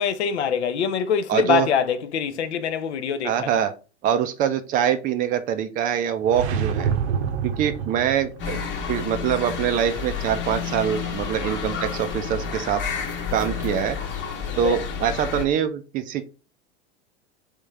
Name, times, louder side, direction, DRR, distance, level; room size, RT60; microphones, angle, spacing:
voice 1, 0.0-3.5 14.6-14.8, left 7 dB, 80° left, 0.6 m, -24 dB
voice 2, 1.3-1.7 3.2-3.7 4.0-6.9 7.4-8.6 8.9-12.8 13.3-14.0 14.6-16.2, right 9 dB, 25° right, 0.3 m, -24 dB
sound 1, 6.2-8.5, right 7 dB, 70° right, 0.7 m, -26 dB
sound 2, 8.4-15.5, left 6 dB, 35° left, 1.0 m, -30 dB
3.5 x 3.2 x 3.2 m
hypercardioid pair, 100°, 34 cm